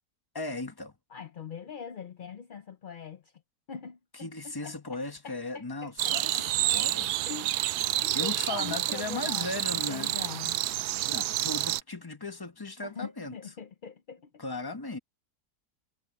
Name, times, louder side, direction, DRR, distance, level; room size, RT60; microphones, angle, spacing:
voice 1, 0.3-0.9 4.1-7.2 7.9-10.2 11.1-13.3 14.4-15.0, left 2 dB, 15° left, 1.2 m, -37 dB
voice 2, 1.1-3.3 3.7-4.8 5.2-7.0 7.3-7.6 8.0-9.5 9.7-10.6 12.8-14.3, left 6 dB, 55° left, 0.5 m, -43 dB
sound 1, 6.0-11.8, right 14 dB, 75° right, 1.1 m, -29 dB
sound 2, 6.1-10.1 10.4-10.5, equal, 20° right, 6.4 m, -59 dB
omnidirectional pair, 1.7 m